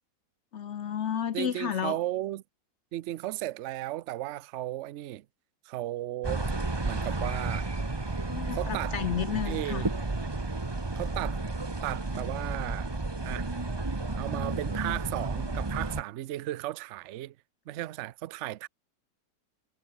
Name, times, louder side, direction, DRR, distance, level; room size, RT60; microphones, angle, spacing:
voice 1, 0.5-2.0 8.3-9.9, left 9 dB, 55° left, 0.8 m, -32 dB
voice 2, 1.3-2.4 2.9-5.2 5.7-6.5 6.8-7.7 8.5-9.0 9.5-9.9 11.0-11.4 11.8-12.9 13.2-13.5 14.2-17.3 17.7-18.7, right 15 dB, 90° right, 0.6 m, -35 dB
sound 1, 6.2-16.0, right 2 dB, 15° right, 1.1 m, -32 dB
omnidirectional pair, 1.9 m